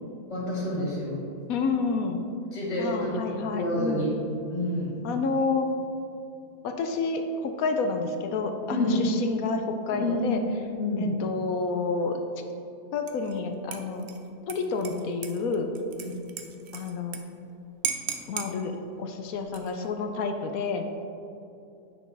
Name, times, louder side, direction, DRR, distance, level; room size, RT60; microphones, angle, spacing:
voice 1, 0.3-1.2 2.5-4.1 4.5-5.0 8.7-9.0 9.9-10.4 10.8-11.1 16.0-16.2, left 1 dB, 45° left, -6 dB, 2.0 m, -28 dB
voice 2, 1.5-2.2 2.8-4.1 5.0-5.7 6.6-10.4 11.0-12.2 12.9-14.1 14.5-15.7 16.7-17.2 18.3-20.9, left 4 dB, 65° left, 5 dB, 0.9 m, -29 dB
Dishes pots and pans / Liquid, 13.1-13.4 13.7-17.2 17.5-17.6 17.8-18.5 19.4-19.9, right 7 dB, 75° right, 0.6 m, -36 dB
8.5 x 6.2 x 3.9 m, 2.7 s
omnidirectional pair, 1.8 m